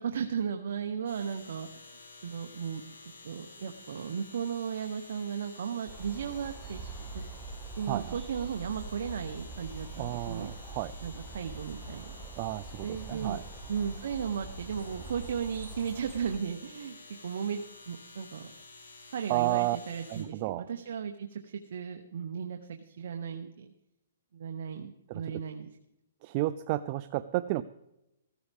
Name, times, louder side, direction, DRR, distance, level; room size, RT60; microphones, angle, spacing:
voice 1, 0.0-1.9 2.2-2.8 3.2-6.9 7.8-10.5 11.0-12.1 12.8-13.4 13.7-17.0 17.2-18.5 19.1-23.7 24.3-25.7, right 7 dB, 60° right, 5 dB, 1.0 m, -35 dB
sound 1, 1.0-20.2, left 3 dB, 85° left, 6.4 m, -51 dB
sound 2, 5.9-16.4, right 3 dB, 10° right, 0.9 m, -44 dB
voice 2, 7.9-8.2 10.0-10.9 12.4-13.4 19.3-19.8 20.1-20.7 25.1-25.4 26.2-27.6, right 17 dB, 30° right, 13 dB, 0.4 m, -32 dB
16.0 x 14.0 x 3.5 m, 0.87 s
hypercardioid pair, 160°, 0 cm